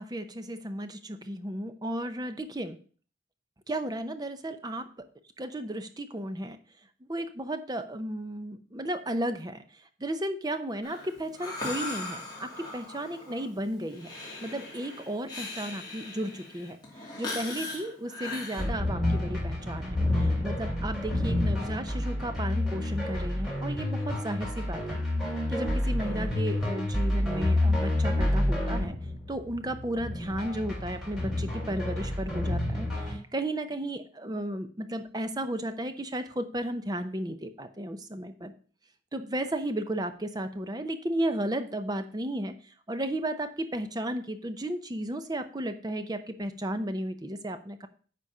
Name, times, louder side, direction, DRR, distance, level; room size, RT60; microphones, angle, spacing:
voice 1, 0.0-2.8 3.7-4.9 5.4-6.6 7.1-9.6 10.0-14.1 14.4-25.0 25.5-29.0 29.3-38.5 39.1-47.9, right 1 dB, 20° right, 9 dB, 0.7 m, -34 dB
Breathing, 10.8-18.6, left 2 dB, 20° left, 2.8 m, -39 dB
sound 1, 18.6-33.1, left 1 dB, ahead, 3.4 m, -29 dB
9.8 x 4.2 x 6.5 m, 0.42 s
head